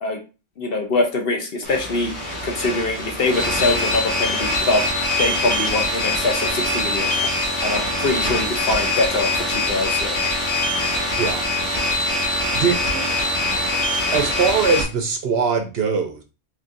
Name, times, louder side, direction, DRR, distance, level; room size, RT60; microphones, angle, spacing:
voice 1, 0.6-2.1 2.4-4.8 5.2-7.1 7.6-10.2, left 2 dB, 55° left, 3 dB, 0.9 m, -23 dB
sound 1, 1.6-14.8, left 1 dB, 25° left, 1.5 m, -23 dB
voice 2, 12.5-13.1 14.1-16.2, right 5 dB, 60° right, 6 dB, 0.8 m, -21 dB
4.3 x 3.0 x 2.5 m, 0.30 s
omnidirectional pair, 1.3 m